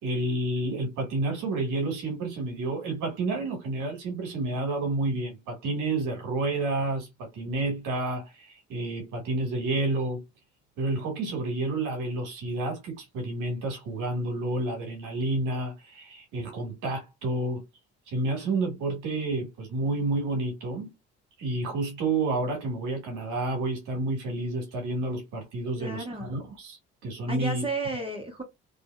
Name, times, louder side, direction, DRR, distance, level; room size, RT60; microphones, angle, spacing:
voice 1, 0.0-10.2 10.8-17.6 18.1-20.9 21.4-27.6, right 2 dB, 80° right, 1.4 m, -30 dB
voice 2, 25.7-26.3 27.3-28.4, right 2 dB, 20° right, 1.2 m, -32 dB
2.7 x 2.6 x 2.2 m
supercardioid pair, 60°, 30 cm